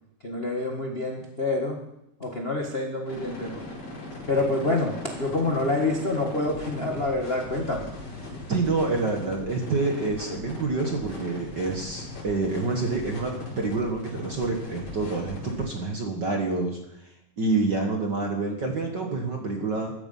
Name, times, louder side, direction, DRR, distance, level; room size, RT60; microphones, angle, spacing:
voice 1, 0.2-1.8 2.2-3.6 4.3-7.9, left 2 dB, 50° left, 1 dB, 0.7 m, -27 dB
sound 1, 3.1-15.7, left 2 dB, 80° left, 6.5 m, -39 dB
voice 2, 8.5-16.8 17.4-19.9, right 3 dB, 45° right, 2 dB, 1.5 m, -27 dB
14.5 x 13.0 x 5.6 m, 0.81 s
omnidirectional pair, 4.0 m